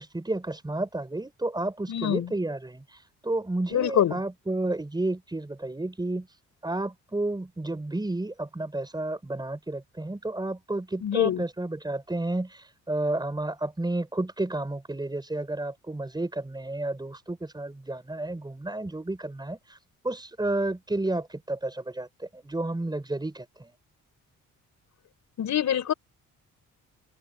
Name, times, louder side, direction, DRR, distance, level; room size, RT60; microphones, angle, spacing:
voice 1, 0.0-2.8 3.2-6.3 6.6-19.8 20.0-23.7, right 2 dB, 15° right, 5.2 m, -31 dB
voice 2, 1.9-2.3 3.7-4.1 11.0-11.4 25.4-25.9, left 10 dB, 65° left, 5.4 m, -25 dB
cardioid pair, 100°, 31 cm